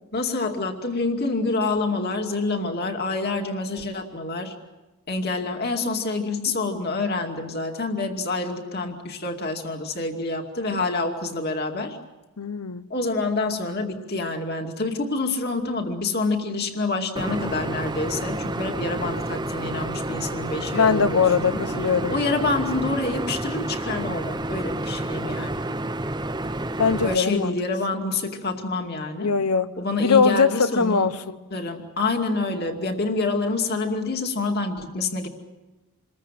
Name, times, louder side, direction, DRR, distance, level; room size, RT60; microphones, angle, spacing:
voice 1, 0.1-4.5 5.1-12.0 12.9-21.7 22.1-25.6 27.0-29.3 29.8-31.1 31.5-35.3, left 3 dB, 45° left, 2.5 m, -27 dB
voice 2, 12.4-12.9 20.7-22.2 26.8-27.5 27.9-28.0 29.2-31.4, left 5 dB, 85° left, 1.0 m, -21 dB
sound 1, 17.2-27.2, right 1 dB, 20° right, 0.8 m, -29 dB
27.5 x 22.0 x 7.7 m
head